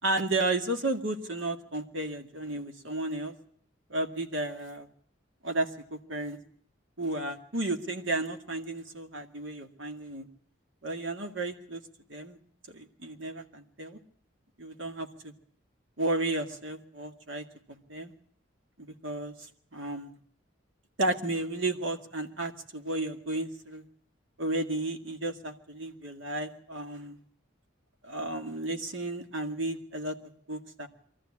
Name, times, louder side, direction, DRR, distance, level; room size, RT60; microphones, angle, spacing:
voice 1, 0.0-3.3 3.9-4.9 5.4-6.4 7.0-10.3 10.8-11.8 12.1-12.4 12.7-14.0 14.6-15.3 16.0-18.1 18.8-20.1 21.0-23.8 24.4-27.2 28.0-30.9, right 2 dB, 70° right, 6 dB, 2.1 m, -33 dB
23.5 x 14.0 x 8.7 m, 0.65 s
head